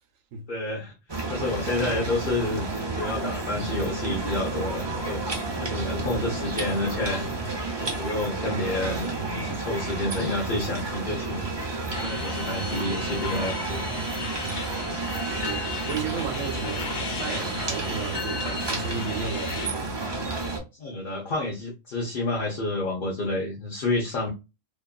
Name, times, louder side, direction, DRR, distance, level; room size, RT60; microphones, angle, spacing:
voice 1, 0.5-7.3 7.8-11.4 12.0-14.0 20.7-24.3, left 2 dB, 50° left, 0.7 m, -29 dB
sound 1, 1.1-20.6, right 3 dB, 30° right, 0.4 m, -31 dB
sound 2, 11.9-19.7, left 4 dB, 75° left, 1.1 m, -36 dB
voice 2, 15.2-19.9, right 6 dB, 80° right, 1.0 m, -34 dB
2.9 x 2.4 x 2.2 m
omnidirectional pair, 1.4 m